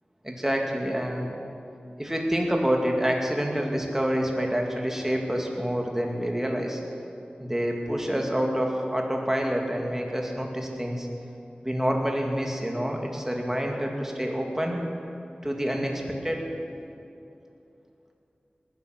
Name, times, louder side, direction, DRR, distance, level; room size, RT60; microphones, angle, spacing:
voice 1, 0.2-1.3 2.0-6.8 7.4-11.1 11.6-14.8 15.4-16.4, equal, 10° right, 1 dB, 2.3 m, -27 dB
19.0 x 10.5 x 6.6 m, 2.7 s
wide cardioid pair, 55°, 3 cm